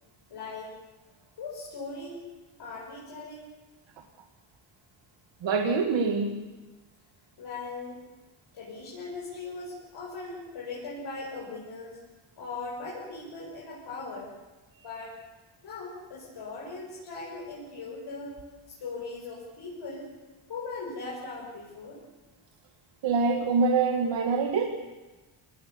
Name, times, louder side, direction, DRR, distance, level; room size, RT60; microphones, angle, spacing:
voice 1, 0.3-0.7 1.4-2.3 2.6-3.5 7.4-8.0 8.5-12.0 12.4-14.4 14.8-15.2 15.6-18.4 18.7-20.1 20.5-22.0, left 3 dB, 55° left, -5 dB, 6.4 m, -39 dB
voice 2, 5.4-6.4 23.0-24.6, right 4 dB, 60° right, 3 dB, 2.1 m, -25 dB
28.5 x 19.5 x 7.1 m, 1.2 s
wide cardioid pair, 175°, 49 cm